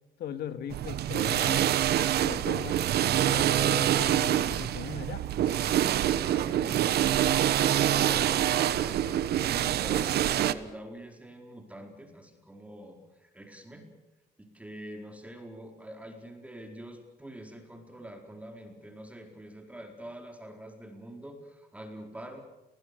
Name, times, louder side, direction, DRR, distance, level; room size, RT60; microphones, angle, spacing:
voice 1, 0.2-1.7 2.2-2.8 3.2-5.3, left 8 dB, 75° left, 10 dB, 2.3 m, -39 dB
sound 1, 0.7-10.5, right 11 dB, 75° right, 1.2 m, -26 dB
voice 2, 7.8-13.9 14.4-22.4, equal, 10° right, 4 dB, 4.5 m, -45 dB
29.5 x 21.5 x 6.8 m, 1.0 s
cardioid pair, 125°, 17 cm